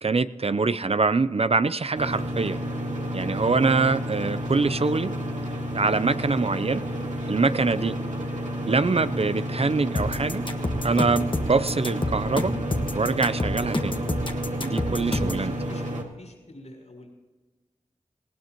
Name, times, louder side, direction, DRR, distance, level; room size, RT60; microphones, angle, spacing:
voice 1, 0.0-2.6 3.1-5.2 5.7-6.8 7.3-8.0 8.7-10.5 10.8-12.6 12.9-14.0 14.6-15.5, right 4 dB, 55° right, 14 dB, 0.6 m, -24 dB
sound 1, 2.0-16.0, equal, 80° right, 2.3 m, -31 dB
sound 2, 10.0-15.5, left 1 dB, 40° left, 1.5 m, -28 dB
voice 2, 14.5-15.9 16.2-17.1, left 1 dB, 65° left, 1 dB, 5.1 m, -46 dB
19.5 x 17.0 x 3.0 m, 1.3 s
cardioid pair, 40°, 12 cm